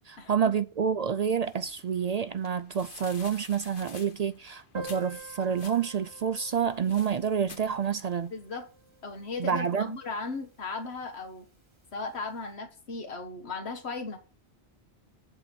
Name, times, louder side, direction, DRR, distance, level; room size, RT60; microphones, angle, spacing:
voice 1, 0.1-8.3 9.4-9.9, right 7 dB, 55° right, 0.4 m, -28 dB
sound 1, 1.4-8.3, left 5 dB, 55° left, 1.2 m, -51 dB
Piano, 4.7-10.1 10.4-10.5 10.7-10.8 11.2-11.3 12.0-12.2, right 1 dB, 25° right, 1.4 m, -47 dB
voice 2, 8.3-8.7 9.0-11.4 11.9-14.2, left 3 dB, 80° left, 1.5 m, -36 dB
8.0 x 4.4 x 6.9 m
omnidirectional pair, 1.1 m